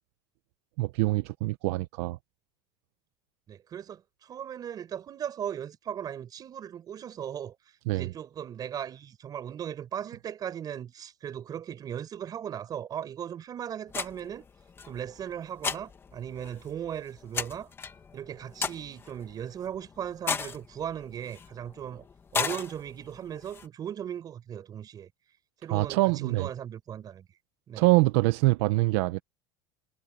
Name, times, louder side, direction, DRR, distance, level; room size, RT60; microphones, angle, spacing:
voice 1, 0.8-2.2 7.9-8.1 25.7-26.5 27.7-29.2, right 21 dB, 70° right, 0.8 m, -25 dB
voice 2, 3.5-7.5 7.9-14.4 14.9-17.7 18.1-22.1 22.3-25.1 25.6-27.3 27.7-27.8, right 9 dB, 25° right, 6.1 m, -37 dB
sound 1, 13.9-23.7, left 5 dB, 15° left, 1.2 m, -37 dB
cardioid pair, 170°, 15 cm